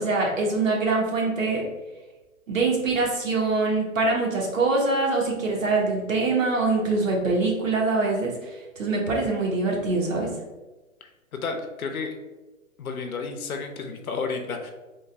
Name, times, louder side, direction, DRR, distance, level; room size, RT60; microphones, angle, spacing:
voice 1, 0.0-1.6 2.5-10.3, right 3 dB, 65° right, -1 dB, 1.3 m, -24 dB
voice 2, 11.0-12.2 12.8-14.7, left 4 dB, 85° left, 5 dB, 0.8 m, -32 dB
3.8 x 2.2 x 3.8 m, 1.1 s
hypercardioid pair, 155°, 42 cm